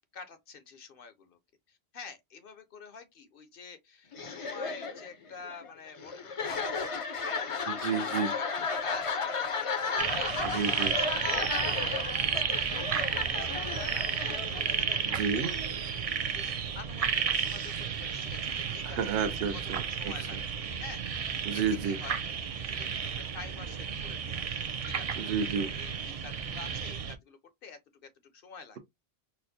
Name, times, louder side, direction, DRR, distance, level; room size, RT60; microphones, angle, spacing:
voice 1, 0.1-1.4 1.7-6.9 7.2-7.5 7.9-8.5 8.8-9.6 10.0-19.0 19.9-23.0 23.3-24.5 24.8-28.8, left 5 dB, 60° left, 0.8 m, -48 dB
sound 1, 4.1-15.8, left 4 dB, 40° left, 0.5 m, -34 dB
voice 2, 7.7-8.4 10.5-10.9 15.1-15.5 18.8-20.4 21.5-22.0 25.2-25.8, right 6 dB, 70° right, 0.9 m, -31 dB
sound 2, 10.0-27.1, right 7 dB, 55° right, 0.4 m, -33 dB
4.3 x 2.0 x 2.6 m
omnidirectional pair, 1.1 m